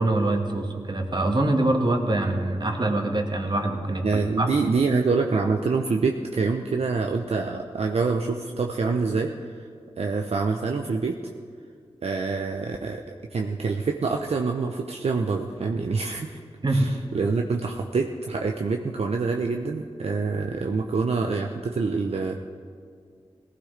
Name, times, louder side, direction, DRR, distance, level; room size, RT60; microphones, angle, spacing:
voice 1, 0.0-4.5 16.6-16.9, right 2 dB, 40° right, 3 dB, 1.7 m, -24 dB
voice 2, 4.0-9.3 10.0-11.2 12.0-13.0 13.3-16.4 16.7-22.4, right 4 dB, 70° right, 3 dB, 0.7 m, -26 dB
18.0 x 15.0 x 3.4 m, 2.2 s
cardioid pair, 50°, 11 cm